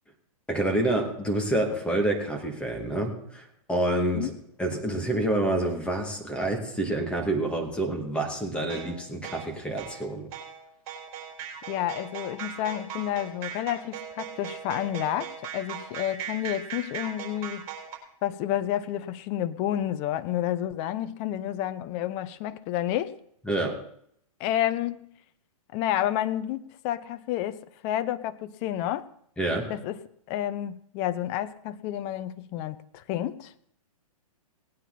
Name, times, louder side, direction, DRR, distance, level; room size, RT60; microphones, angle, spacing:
voice 1, 0.5-4.3 4.6-10.3 23.5-23.8 29.4-29.7, right 1 dB, 5° left, 2.4 m, -28 dB
sound 1, 8.7-18.0, right 8 dB, 45° right, 4.2 m, -39 dB
voice 2, 11.7-17.7 18.2-23.2 24.4-25.0 25.7-29.1 29.7-30.0 30.3-33.5, left 12 dB, 35° left, 0.8 m, -30 dB
18.5 x 9.2 x 4.2 m
hypercardioid pair, 130°, 19 cm